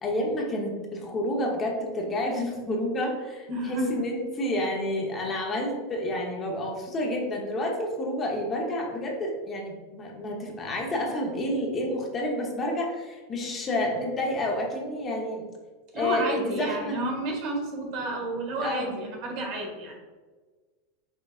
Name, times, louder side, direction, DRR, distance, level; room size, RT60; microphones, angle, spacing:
voice 1, 0.0-15.4 15.9-17.0 18.6-18.9, left 1 dB, 25° left, 0 dB, 0.9 m, -29 dB
voice 2, 3.5-4.0 15.9-19.9, right 2 dB, 55° right, 1 dB, 1.3 m, -31 dB
5.6 x 3.9 x 2.4 m, 1.4 s
supercardioid pair, 135°, 0 cm